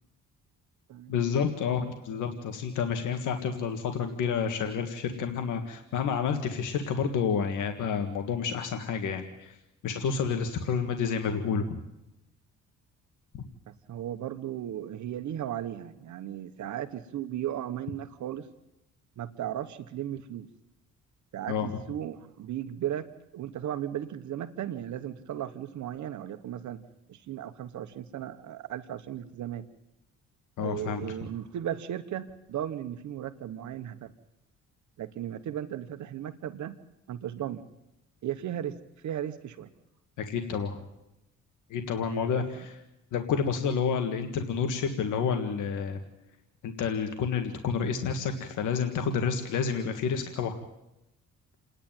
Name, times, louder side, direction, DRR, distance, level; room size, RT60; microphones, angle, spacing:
voice 1, 1.1-9.6 9.8-11.8 13.3-13.4 21.5-21.7 30.6-31.1 40.2-40.8 41.7-42.7 43.1-46.0 46.6-50.5, left 6 dB, 80° left, 6 dB, 1.9 m, -29 dB
voice 2, 13.7-18.5 19.2-20.5 21.3-26.8 27.1-29.6 30.6-34.1 35.0-36.8 37.1-37.6 38.2-39.7 42.0-42.4, right 11 dB, 70° right, 10 dB, 1.2 m, -36 dB
29.0 x 10.5 x 9.1 m, 0.90 s
cardioid pair, 90°, 30 cm